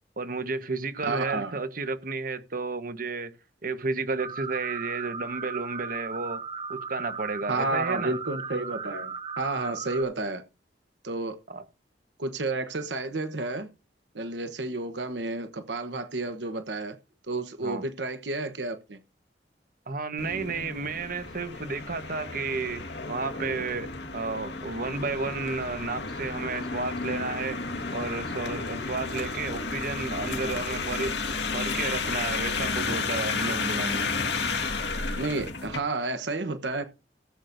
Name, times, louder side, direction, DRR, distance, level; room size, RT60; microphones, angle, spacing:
voice 1, 0.2-3.3 3.6-6.4 6.7-8.2 11.5-11.6 17.6-17.8 19.9-27.6 27.9-31.1 31.5-34.1, right 3 dB, 55° right, 1.2 m, -32 dB
voice 2, 1.0-1.6 7.5-10.4 11.0-11.4 12.2-13.7 14.1-17.0 17.3-19.0 30.2-30.7 35.2-36.9, right 2 dB, 85° right, 1.1 m, -31 dB
sound 1, 4.2-10.0, right 5 dB, 30° right, 0.9 m, -37 dB
sound 2, 20.2-35.8, left 4 dB, 75° left, 1.8 m, -32 dB
17.5 x 8.3 x 2.6 m
head